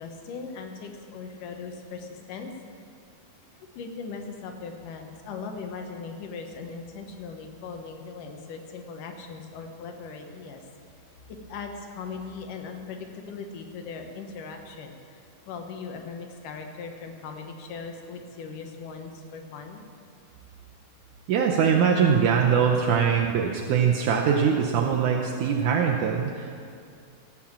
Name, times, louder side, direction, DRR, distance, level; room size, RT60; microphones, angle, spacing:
voice 1, 0.0-2.5 3.8-10.6 11.5-19.9, left 5 dB, 80° left, 4 dB, 2.8 m, -39 dB
voice 2, 21.3-26.6, right 7 dB, 75° right, 0 dB, 2.2 m, -22 dB
16.5 x 7.1 x 7.3 m, 2.4 s
omnidirectional pair, 3.7 m